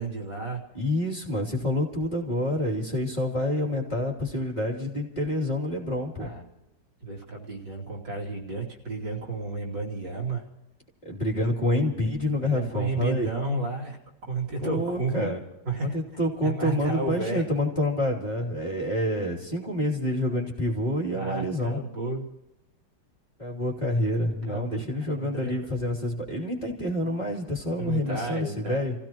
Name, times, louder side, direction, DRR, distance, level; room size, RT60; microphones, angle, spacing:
voice 1, 0.0-0.6 6.2-6.4 7.0-10.4 12.4-14.0 14.3-15.3 15.7-16.0 16.4-17.4 21.1-22.2 24.5-25.7 27.8-28.8, right 3 dB, 75° right, -2 dB, 3.5 m, -32 dB
voice 2, 0.7-6.3 11.0-13.3 14.6-15.4 15.9-21.8 23.4-28.9, left 1 dB, 20° left, -3 dB, 3.0 m, -28 dB
29.5 x 16.0 x 3.0 m, 0.95 s
omnidirectional pair, 2.0 m